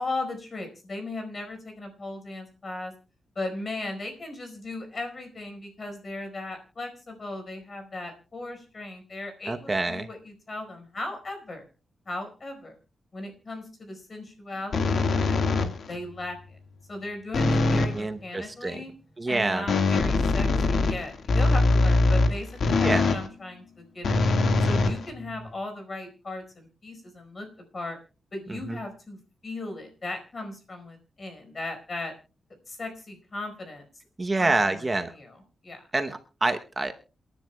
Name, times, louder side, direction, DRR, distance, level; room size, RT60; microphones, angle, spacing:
voice 1, 0.0-2.9 3.3-11.6 12.1-12.8 13.1-16.6 16.9-18.9 19.3-24.3 24.6-27.5 27.7-28.0 28.3-29.2 29.4-32.1 32.7-33.8 34.4-34.8 35.2-35.4 35.6-35.9, left 2 dB, 40° left, 5 dB, 4.6 m, -37 dB
voice 2, 9.5-10.1 17.9-18.8 19.2-19.7 22.8-23.1 28.5-28.8 34.2-35.1 35.9-36.9, right 2 dB, 25° right, 7 dB, 0.9 m, -27 dB
sound 1, 14.7-15.9 17.3-18.0 19.7-23.3 24.0-25.5, left 3 dB, 65° left, 1.7 m, -22 dB
28.0 x 10.5 x 2.3 m, 0.35 s
cardioid pair, 110°, 0 cm